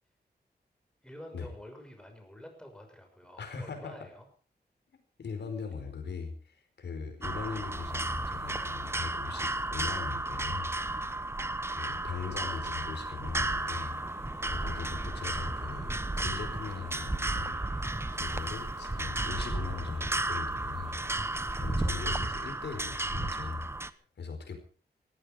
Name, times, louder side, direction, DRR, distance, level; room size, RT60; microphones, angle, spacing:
voice 1, 1.0-4.3, equal, 5° left, 4 dB, 6.1 m, -48 dB
voice 2, 3.4-4.0 4.9-10.7 11.7-14.2 14.5-17.5 17.8-21.0 21.5-23.7 24.2-24.6, left 5 dB, 85° left, 6 dB, 4.7 m, -40 dB
sound 1, 7.2-23.9, right 2 dB, 15° right, 0.9 m, -33 dB
sound 2, 13.3-22.2, left 4 dB, 50° left, 7.5 m, -52 dB
18.0 x 15.0 x 5.1 m, 0.40 s
wide cardioid pair, 110°, 17 cm